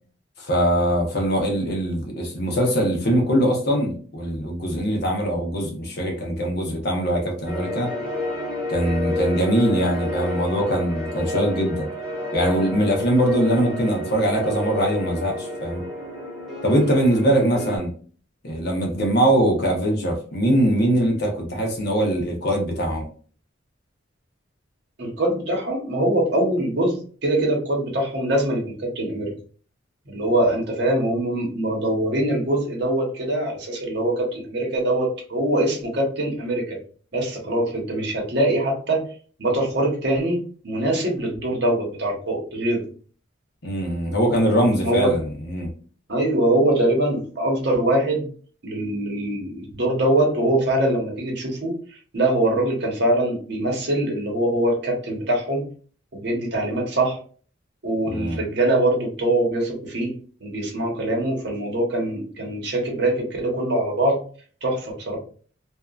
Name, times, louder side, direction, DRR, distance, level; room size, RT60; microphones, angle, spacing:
voice 1, 0.4-7.9 8.7-11.9 12.3-15.8 16.6-17.9 18.4-23.1 43.6-45.7 58.1-58.4, equal, 55° left, 0 dB, 0.8 m, -22 dB
sound 1, 7.5-17.8, left 1 dB, ahead, 0.8 m, -30 dB
voice 2, 25.0-29.3 30.1-36.8 37.1-39.0 39.4-42.9 44.8-45.1 46.1-48.3 48.6-55.6 56.1-57.2 57.8-60.1 60.4-64.2 64.6-65.2, right 1 dB, 60° right, -1 dB, 0.9 m, -23 dB
2.7 x 2.3 x 2.3 m, 0.43 s
head